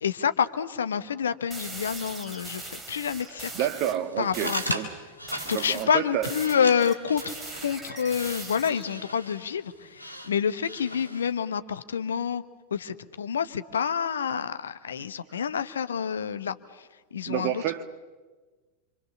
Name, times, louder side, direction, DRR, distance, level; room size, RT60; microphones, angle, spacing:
voice 1, 0.0-3.5 4.2-4.8 5.5-7.3 7.6-12.4 12.7-16.6 17.1-17.6, left 7 dB, 65° left, 1.1 m, -28 dB
sound 1, 1.5-4.0 4.3-4.8 5.3-9.0, right 2 dB, 15° right, 3.1 m, -41 dB
voice 2, 3.5-4.9 5.4-6.3 15.0-15.1 17.2-17.8, right 11 dB, 45° right, 1.6 m, -29 dB
sound 2, 4.0-11.4, equal, 90° right, 2.8 m, -38 dB
28.0 x 25.5 x 7.1 m
figure-of-eight pair, 90°, 0 cm